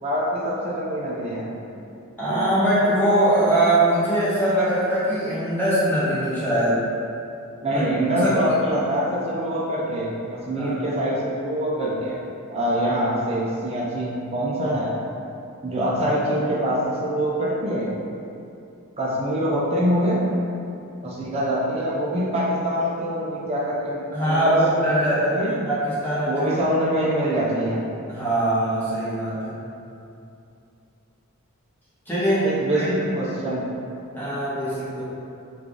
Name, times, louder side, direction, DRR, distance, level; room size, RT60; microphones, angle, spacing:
voice 1, 0.0-1.5 7.6-12.2 12.5-15.0 15.6-17.9 19.0-20.2 21.0-24.6 24.8-25.5 26.3-27.8 32.4-33.6, equal, 25° right, -6 dB, 0.4 m, -24 dB
voice 2, 2.2-6.8 7.7-7.8 8.2-8.3 10.6-10.7 24.1-26.6 28.1-29.6 32.1-32.5 32.7-32.9 34.1-35.0, right 1 dB, 10° left, -11 dB, 0.8 m, -22 dB
3.2 x 2.4 x 3.6 m, 2.6 s
head